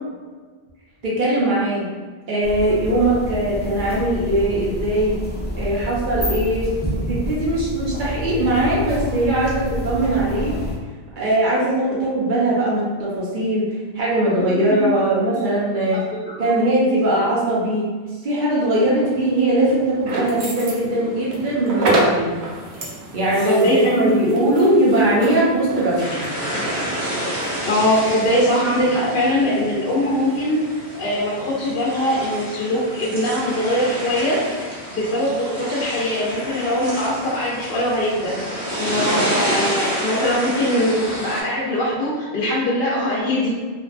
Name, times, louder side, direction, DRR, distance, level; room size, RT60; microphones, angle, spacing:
voice 1, 1.0-1.9 2.3-5.1 5.6-6.7 7.1-10.6 11.2-16.0 16.4-17.9 18.2-22.3 23.1-26.2, right 1 dB, 55° right, -6 dB, 0.8 m, -20 dB
sound 1, 2.4-10.8, left 1 dB, 15° left, 0.3 m, -28 dB
voice 2, 14.4-15.4 15.9-16.0 16.3-16.6 23.4-24.6 27.6-30.6 31.0-34.4 34.9-38.3 38.8-43.5, left 1 dB, 70° left, -7 dB, 0.8 m, -22 dB
sound 2, 18.8-37.9, right 2 dB, 90° right, 0.8 m, -31 dB
sound 3, 26.0-41.4, equal, 25° right, 0.8 m, -29 dB
2.5 x 2.2 x 2.4 m, 1.4 s
omnidirectional pair, 1.1 m